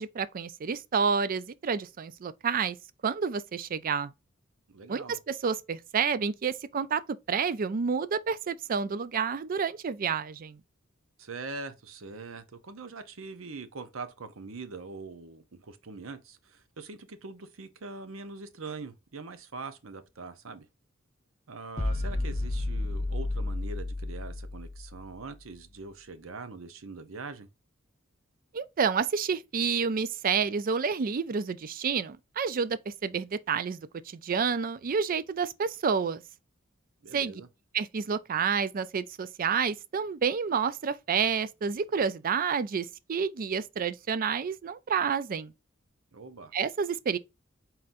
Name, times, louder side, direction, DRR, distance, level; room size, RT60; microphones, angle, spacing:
voice 1, 0.0-2.8 3.0-4.1 4.9-7.0 7.3-10.6 28.5-33.8 34.1-36.2 37.1-37.4 37.7-45.5 46.5-47.2, right 6 dB, 45° right, 0.4 m, -29 dB
voice 2, 4.7-5.2 11.2-20.7 21.5-27.5 37.0-37.5 46.1-46.5, right 3 dB, 75° right, 0.8 m, -42 dB
sound 1, 21.8-25.2, left 2 dB, 30° left, 0.8 m, -32 dB
4.3 x 3.8 x 2.6 m
head